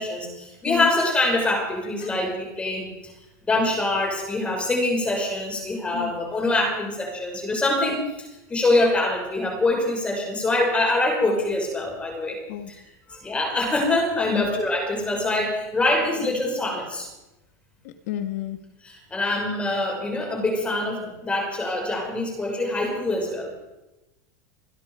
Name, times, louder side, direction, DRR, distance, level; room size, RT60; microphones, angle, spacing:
voice 1, 0.0-3.1 3.5-12.4 12.7-12.8 13.1-17.1 19.1-23.5, left 2 dB, 15° left, 0 dB, 6.2 m, -24 dB
voice 2, 17.8-18.6, left 12 dB, 75° left, 6 dB, 1.7 m, -30 dB
27.5 x 10.5 x 4.9 m, 0.99 s
supercardioid pair, 135°, 9 cm